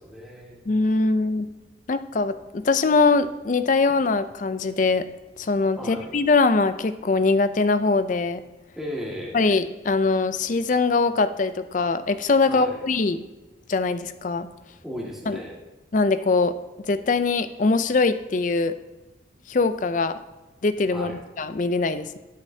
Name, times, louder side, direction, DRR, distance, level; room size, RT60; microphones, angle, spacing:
voice 1, 0.0-0.6 5.8-6.1 8.8-9.4 12.5-12.8 14.8-15.6 20.9-21.2, equal, ahead, -4 dB, 1.8 m, -35 dB
voice 2, 0.7-1.5 1.9-5.0 5.4-8.4 9.3-13.2 13.7-14.5 15.3-15.4 15.9-16.5 16.9-18.7 19.5-20.2 20.6-22.2, left 3 dB, 40° left, 11 dB, 0.4 m, -22 dB
19.5 x 6.5 x 2.7 m, 1.1 s
head